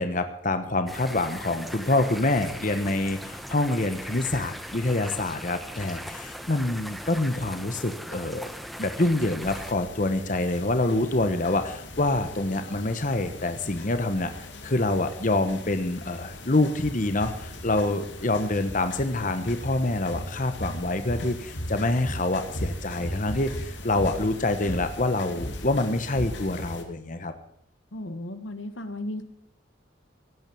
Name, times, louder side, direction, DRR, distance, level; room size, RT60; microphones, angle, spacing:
voice 1, 0.0-8.5 8.8-14.3 14.6-27.3, left 2 dB, 40° left, 9 dB, 1.1 m, -26 dB
sound 1, 0.9-9.7, equal, ahead, 1.0 m, -39 dB
sound 2, 9.4-26.8, left 1 dB, 65° left, 2.4 m, -38 dB
voice 2, 27.9-29.2, left 1 dB, 80° left, 10 dB, 1.4 m, -35 dB
17.0 x 9.1 x 7.0 m, 0.74 s
head